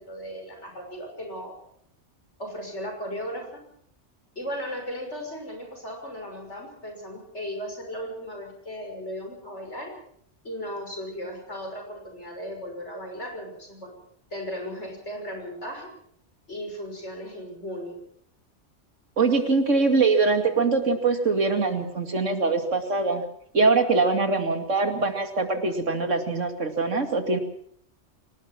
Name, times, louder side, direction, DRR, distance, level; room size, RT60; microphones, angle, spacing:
voice 1, 0.0-1.6 2.4-3.6 4.3-9.9 10.4-13.9 14.3-15.9 16.5-18.0, equal, 65° left, 3 dB, 6.6 m, -36 dB
voice 2, 19.2-23.2 23.5-27.4, right 3 dB, 80° right, 6 dB, 2.8 m, -23 dB
26.0 x 18.5 x 6.1 m, 0.65 s
omnidirectional pair, 1.3 m